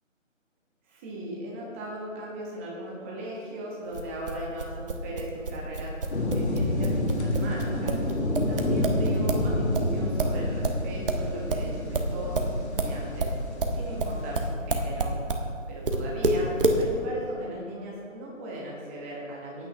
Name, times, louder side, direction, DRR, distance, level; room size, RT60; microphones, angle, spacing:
voice 1, 0.9-6.0 6.3-8.0 8.5-13.3 13.7-15.1 15.7-19.7, right 1 dB, 10° right, -3 dB, 1.2 m, -38 dB
sound 1, 3.9-9.5 9.7-15.5 15.9-16.8, right 2 dB, 45° right, 1.1 m, -28 dB
sound 2, 6.1-14.5, left 1 dB, 55° left, 1.8 m, -29 dB
15.0 x 9.0 x 3.3 m, 2.2 s
figure-of-eight pair, 150°, 39 cm